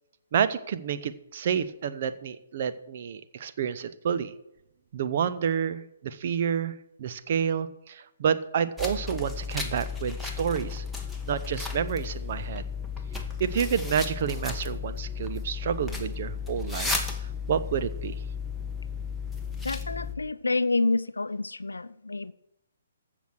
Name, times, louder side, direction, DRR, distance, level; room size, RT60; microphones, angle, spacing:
voice 1, 0.3-4.3 4.9-10.8 11.3-12.6 13.4-17.0 17.5-18.2, right 7 dB, 40° right, 0.8 m, -29 dB
sound 1, 8.8-20.2, left 5 dB, ahead, 1.2 m, -34 dB
voice 2, 19.6-22.3, left 3 dB, 70° left, 0.6 m, -28 dB
15.5 x 6.2 x 6.3 m
figure-of-eight pair, 130°, 0 cm